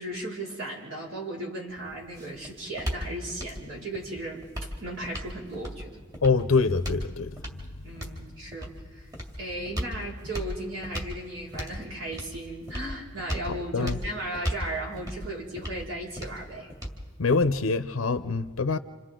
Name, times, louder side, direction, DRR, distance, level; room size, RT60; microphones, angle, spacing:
voice 1, 0.0-6.0 7.8-9.1 9.4-16.7, right 1 dB, 70° right, 5.0 m, -36 dB
sound 1, 1.7-17.7, equal, 20° right, 2.5 m, -37 dB
voice 2, 6.2-7.3 13.7-14.0 17.2-18.8, left 4 dB, 90° left, 0.6 m, -24 dB
30.0 x 27.0 x 3.8 m
head